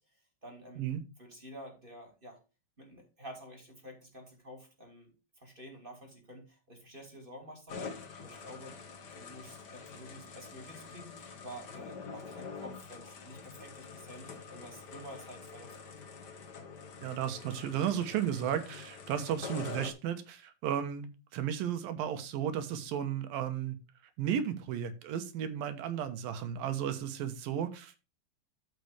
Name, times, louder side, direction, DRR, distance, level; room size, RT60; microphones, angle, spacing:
voice 1, 0.0-0.9 1.2-2.4 2.8-8.8 9.1-16.1, equal, 15° right, 2 dB, 2.4 m, -50 dB
sound 1, 7.7-19.9, left 5 dB, 80° left, 0.9 m, -46 dB
voice 2, 17.0-23.8 24.2-28.1, right 9 dB, 80° right, 10 dB, 2.9 m, -34 dB
13.0 x 5.8 x 3.3 m, 0.29 s
omnidirectional pair, 4.1 m